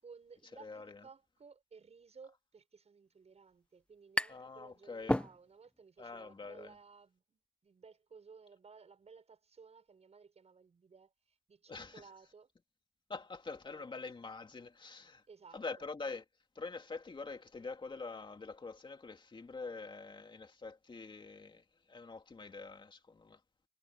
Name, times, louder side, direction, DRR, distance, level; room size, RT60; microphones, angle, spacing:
voice 1, 0.0-12.5 13.7-13.9 15.3-15.9, right 5 dB, 70° right, 7.2 m, -58 dB
voice 2, 0.6-1.0 4.3-5.2 6.0-6.7 11.7-12.1 13.1-15.2 15.5-16.2 16.6-23.4, left 4 dB, 45° left, 2.4 m, -45 dB
sound 1, 3.0-3.1 3.3-4.6 4.9-5.8, left 1 dB, 10° left, 0.9 m, -35 dB
wide cardioid pair, 120°, 12 cm